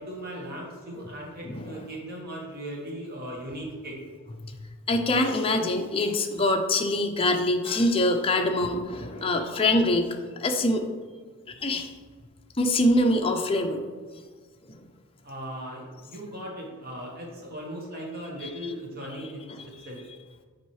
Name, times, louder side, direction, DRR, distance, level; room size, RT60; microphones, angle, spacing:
voice 1, 0.0-4.0 15.2-20.0, equal, 45° right, -2 dB, 1.1 m, -38 dB
voice 2, 4.9-10.8 11.6-11.9 12.6-13.8 14.7-14.8 19.5-19.6, left 1 dB, 25° left, 3 dB, 0.5 m, -24 dB
7.2 x 4.6 x 3.1 m, 1.5 s
head